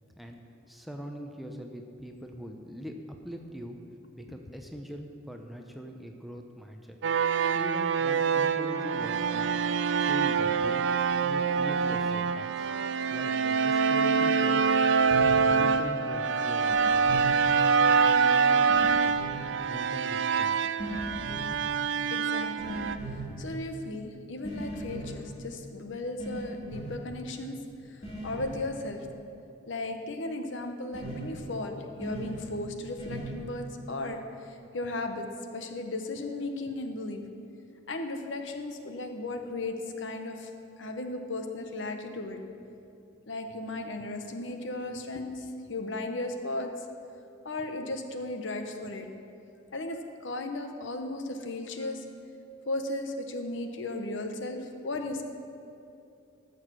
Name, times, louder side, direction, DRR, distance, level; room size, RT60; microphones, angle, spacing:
voice 1, 0.2-3.0 3.2-3.8 4.1-7.0 7.5-9.6 10.0-10.8 11.2-12.7 13.1-14.7 15.2-17.3 18.0-19.2 19.7-20.5, equal, ahead, 3 dB, 0.6 m, -42 dB
sound 1, 7.0-23.0, right 5 dB, 70° right, 0.4 m, -25 dB
sound 2, 15.0-15.3 16.7-17.3 18.7-19.4 20.8-21.5 22.6-23.2 24.4-25.1 26.2-26.4 26.7-26.9 28.0-28.5 30.9-31.2 32.0-32.3 33.0-33.3, right 2 dB, 35° left, 2.8 m, -38 dB
voice 2, 22.1-22.9 23.4-27.6 27.9-29.1 29.7-35.3 35.5-37.2 37.9-40.5 40.8-42.4 43.3-46.7 47.4-49.1 49.7-52.0 52.7-55.2, left 2 dB, 70° left, 5 dB, 0.9 m, -36 dB
13.5 x 6.5 x 6.1 m, 2.7 s
head